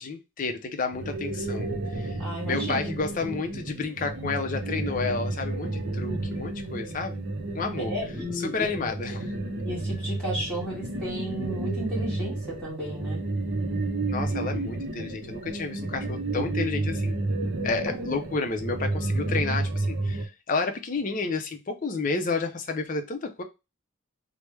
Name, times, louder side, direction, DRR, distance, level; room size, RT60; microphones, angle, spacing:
voice 1, 0.0-2.2 2.4-7.2 7.5-7.9 8.3-9.3 14.1-17.2 17.6-23.4, left 4 dB, 35° left, 5 dB, 0.5 m, -31 dB
sound 1, 0.9-20.3, right 2 dB, 50° right, 0.6 m, -31 dB
voice 2, 2.2-2.9 7.9-8.7 9.6-13.2 17.9-18.0, equal, 5° left, -8 dB, 1.6 m, -33 dB
3.2 x 2.0 x 3.2 m, 0.25 s
head